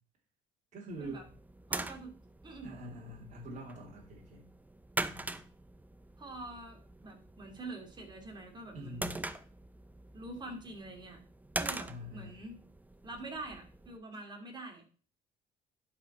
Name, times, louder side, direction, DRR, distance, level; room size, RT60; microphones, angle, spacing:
voice 1, 0.7-1.3 2.6-4.5 5.1-5.3 8.7-9.1 11.8-12.4, right 1 dB, 45° right, -2 dB, 2.7 m, -45 dB
sound 1, 0.9-14.0, right 2 dB, 10° right, 0.5 m, -43 dB
voice 2, 1.7-2.2 2.4-2.8 6.2-9.2 10.1-11.2 11.6-12.6 13.0-14.9, right 2 dB, 25° right, 2 dB, 2.6 m, -45 dB
11.0 x 4.9 x 4.3 m, 0.39 s
cardioid pair, 110°, 17 cm